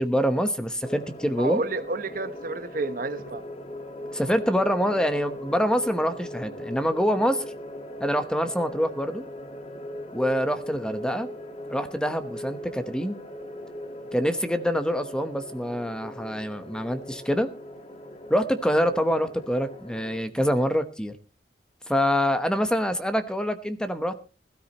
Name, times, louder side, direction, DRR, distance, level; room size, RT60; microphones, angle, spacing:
voice 1, 0.0-1.6 4.1-7.4 8.0-9.2 10.1-11.3 11.7-13.2 14.1-17.5 18.3-21.1 21.9-24.2, equal, 5° left, 1.0 m, -25 dB
sound 1, 0.8-20.2, equal, 35° left, 1.6 m, -39 dB
voice 2, 1.4-3.4, right 3 dB, 50° right, 1.0 m, -30 dB
20.5 x 13.0 x 3.0 m
head